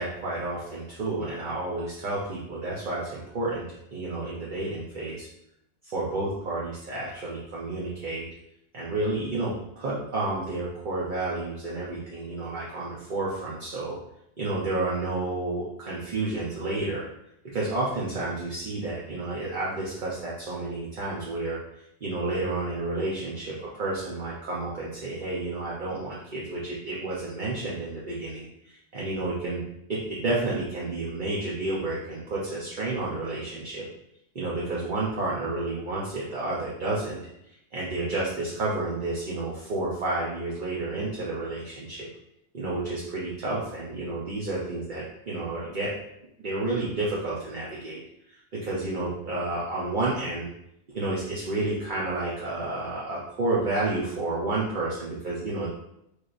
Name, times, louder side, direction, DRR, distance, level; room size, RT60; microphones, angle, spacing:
voice 1, 0.0-3.7 3.9-5.3 5.8-8.2 8.7-14.0 14.4-17.1 17.4-21.6 22.0-29.6 29.9-33.8 34.3-42.1 42.5-45.9 46.4-48.0 48.3-50.5 50.9-55.7, right 2 dB, 45° right, -6 dB, 0.7 m, -30 dB
4.4 x 3.2 x 2.5 m, 0.79 s
omnidirectional pair, 1.5 m